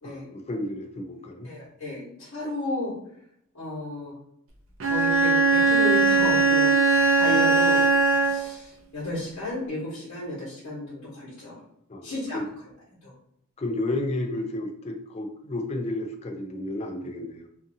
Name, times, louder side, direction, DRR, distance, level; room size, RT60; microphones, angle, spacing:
voice 1, 0.0-1.5 11.9-12.5 13.6-17.5, left 1 dB, 30° left, 4 dB, 0.4 m, -32 dB
voice 2, 1.4-3.0 3.5-4.1 4.8-7.9 8.2-11.6 12.0-12.4 13.0-13.1, left 1 dB, 80° left, -8 dB, 1.1 m, -33 dB
Bowed string instrument, 4.8-8.6, right 3 dB, 70° right, 0.5 m, -20 dB
2.6 x 2.5 x 2.6 m, 0.74 s
head